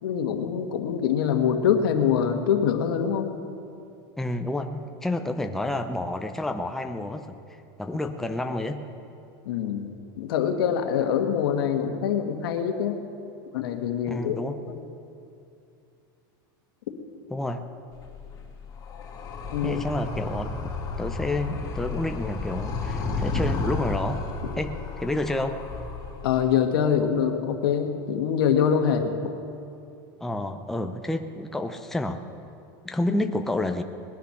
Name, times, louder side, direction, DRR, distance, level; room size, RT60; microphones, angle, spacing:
voice 1, 0.0-3.3 9.4-13.0 13.5-14.4 14.7-14.8 19.5-19.8 24.4-24.5 26.2-29.1, left 8 dB, 80° left, 5 dB, 1.6 m, -24 dB
voice 2, 4.2-8.9 14.1-14.6 17.3-17.7 19.6-24.2 24.6-25.6 30.2-32.2 32.8-33.8, left 1 dB, 5° left, 6 dB, 0.7 m, -29 dB
Animal, 17.9-26.5, left 3 dB, 30° left, 2.7 m, -32 dB
20.0 x 10.5 x 5.8 m, 2.6 s
supercardioid pair, 135°, 12 cm